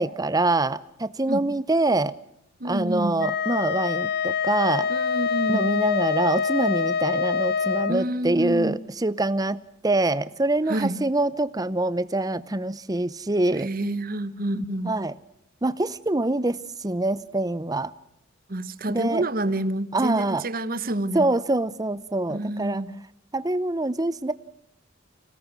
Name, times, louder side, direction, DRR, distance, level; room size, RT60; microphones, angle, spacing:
voice 1, 0.0-2.1 2.6-4.9 5.5-13.7 14.9-15.1 15.6-17.9 18.9-19.2 19.9-20.4 21.1-22.8 23.3-24.3, right 2 dB, 20° right, 16 dB, 0.7 m, -25 dB
voice 2, 2.6-3.2 4.9-5.7 7.9-8.8 10.7-11.0 13.6-15.0 18.5-21.3 22.3-22.9, right 1 dB, 45° right, 13 dB, 1.1 m, -28 dB
Wind instrument woodwind instrument, 3.2-8.0, left 6 dB, 50° left, 0.7 m, -25 dB
25.5 x 18.0 x 6.1 m, 0.82 s
head